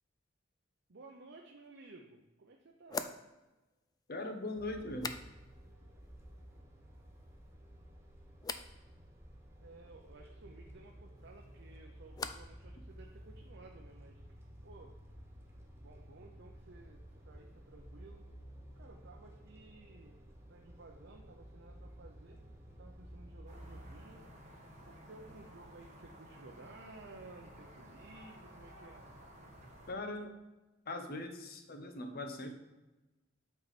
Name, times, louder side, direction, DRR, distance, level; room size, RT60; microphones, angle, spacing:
voice 1, 0.9-3.1 9.6-14.2 14.6-14.9 15.8-18.3 18.8-20.2 20.5-22.4 22.8-24.3 24.8-29.1, right 2 dB, 60° right, 0 dB, 0.7 m, -56 dB
sound 1, 1.6-1.7 2.9-5.7 6.0-6.6 6.9-7.5 8.4-8.7 11.2-12.6 12.9-13.5, left 5 dB, 20° left, 0.3 m, -46 dB
voice 2, 4.1-5.2 29.9-30.3 30.9-32.6, left 2 dB, 50° left, 5 dB, 0.9 m, -40 dB
sound 2, 4.5-24.0, equal, 15° right, 1.1 m, -54 dB
sound 3, 23.5-29.9, equal, 40° right, 1.4 m, -54 dB
8.1 x 4.7 x 4.2 m, 1.1 s
head